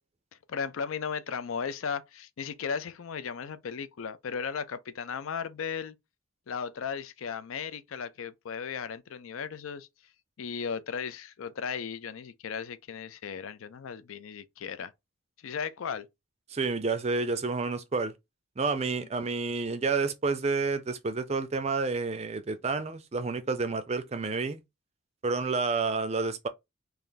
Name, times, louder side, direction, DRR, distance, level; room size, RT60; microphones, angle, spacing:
voice 1, 0.5-5.9 6.5-9.9 10.4-14.9 15.4-16.1, left 6 dB, 70° left, 0.4 m, -36 dB
voice 2, 16.5-18.1 18.6-24.6 25.2-26.5, right 4 dB, 30° right, 0.4 m, -29 dB
3.3 x 2.6 x 3.9 m
head